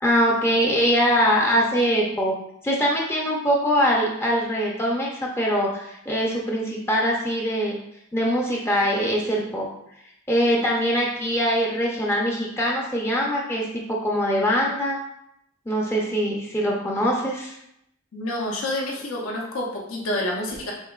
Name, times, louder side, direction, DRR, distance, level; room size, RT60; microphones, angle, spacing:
voice 1, 0.0-2.3 2.6-5.1 5.4-7.8 8.1-9.7 10.3-15.0 15.7-17.6, equal, 10° left, -2 dB, 0.5 m, -22 dB
voice 2, 18.1-20.7, left 1 dB, 80° left, -2 dB, 0.8 m, -28 dB
5.6 x 3.4 x 2.4 m, 0.79 s
head